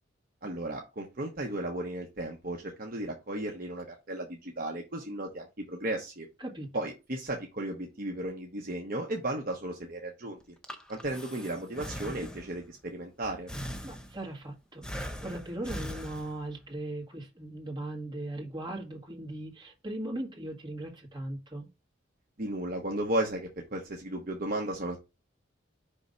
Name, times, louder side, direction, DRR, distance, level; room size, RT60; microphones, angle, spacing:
voice 1, 0.4-6.3 6.7-10.4 10.9-13.5 22.4-25.0, right 1 dB, 50° right, 1.0 m, -35 dB
Breathing, 10.4-12.7 13.5-14.4 14.8-16.6, equal, 5° left, 0.7 m, -41 dB
voice 2, 13.8-21.7, right 1 dB, 25° right, 1.8 m, -38 dB
5.3 x 3.7 x 5.2 m
head